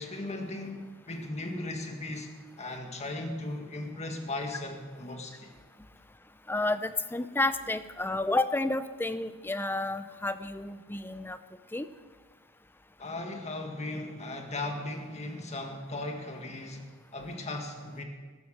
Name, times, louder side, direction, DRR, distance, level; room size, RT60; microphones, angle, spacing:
voice 1, 0.0-5.5 13.0-18.0, left 2 dB, 30° left, 3 dB, 1.8 m, -37 dB
voice 2, 6.5-11.4 11.7-11.9, left 2 dB, 10° left, 12 dB, 0.5 m, -30 dB
13.5 x 12.0 x 6.5 m, 1.4 s
head